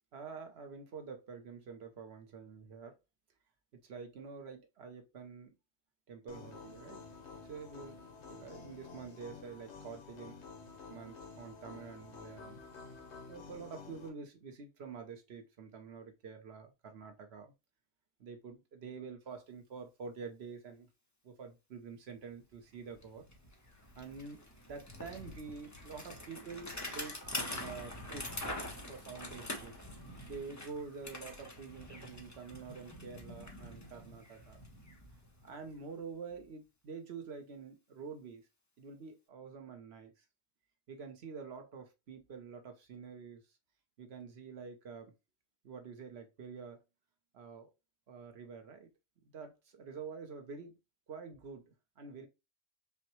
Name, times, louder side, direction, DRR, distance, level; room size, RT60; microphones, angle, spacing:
voice 1, 0.1-3.0 3.7-5.5 6.1-7.0 7.5-8.0 8.3-10.4 10.9-12.6 13.3-17.5 18.2-20.9 21.2-23.2 23.9-27.2 27.6-28.3 28.9-29.8 30.3-34.6 35.4-38.5 38.8-40.1 40.9-43.4 44.0-45.1 45.6-46.8 47.3-47.7 48.1-48.9 49.3-50.7 51.1-52.3, right 5 dB, 70° right, 1.1 m, -47 dB
sound 1, 6.3-14.1, left 4 dB, 85° left, 1.2 m, -51 dB
Bicycle, 22.5-22.6 22.9-35.8, left 1 dB, 20° left, 0.6 m, -45 dB
5.4 x 2.2 x 3.0 m
omnidirectional pair, 1.1 m